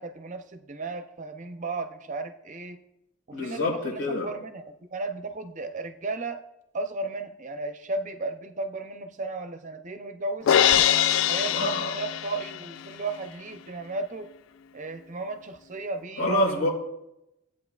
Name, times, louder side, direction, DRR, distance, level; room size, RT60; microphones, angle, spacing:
voice 1, 0.0-2.8 3.3-6.4 6.7-10.5 11.3-14.3 14.7-16.7, right 2 dB, 35° right, 8 dB, 0.6 m, -35 dB
voice 2, 3.3-4.3 11.4-12.0 16.2-16.7, left 1 dB, 80° left, -2 dB, 4.0 m, -27 dB
Crash cymbal, 10.5-12.7, left 10 dB, 60° left, 0.3 m, -22 dB
17.0 x 8.4 x 2.4 m, 0.87 s
head